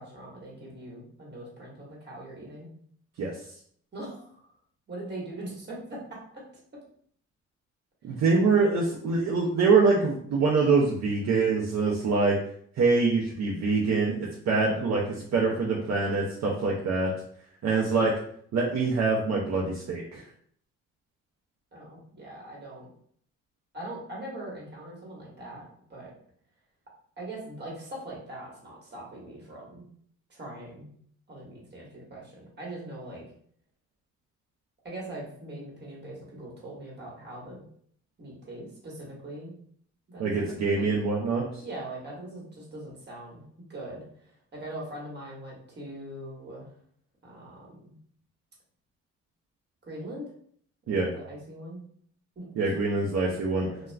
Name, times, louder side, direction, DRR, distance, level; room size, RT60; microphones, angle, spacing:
voice 1, 0.0-2.7 3.9-4.5 4.9-6.0 21.7-22.9 23.7-26.1 27.2-29.8 30.3-30.9 31.3-33.2 34.8-37.6 38.2-39.5 40.1-40.9 41.6-43.4 43.7-46.7 47.2-47.9 49.8-50.3 50.8-51.8 52.3-52.7 53.7-53.9, right 1 dB, 35° right, -3 dB, 1.2 m, -41 dB
voice 2, 8.0-12.3 12.8-17.1 17.6-18.1 18.5-20.2 40.2-41.4 50.9-51.1 52.6-53.7, right 4 dB, 60° right, -3 dB, 0.6 m, -24 dB
2.3 x 2.2 x 3.2 m, 0.62 s
cardioid pair, 90°, 30 cm